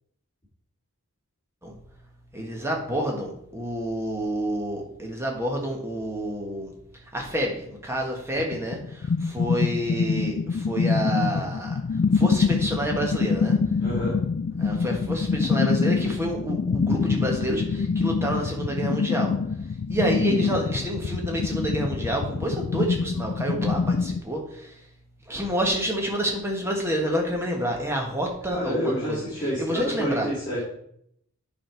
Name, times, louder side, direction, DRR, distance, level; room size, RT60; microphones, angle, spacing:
voice 1, 2.3-6.7 7.1-11.8 12.1-13.6 14.6-19.3 19.9-24.7 25.3-30.3, right 1 dB, 10° right, 1 dB, 1.3 m, -28 dB
sound 1, 8.4-24.2, left 5 dB, 45° left, 0.3 m, -25 dB
voice 2, 13.8-14.2 28.5-30.6, equal, 20° left, -8 dB, 2.7 m, -28 dB
8.7 x 5.3 x 4.5 m, 0.73 s
head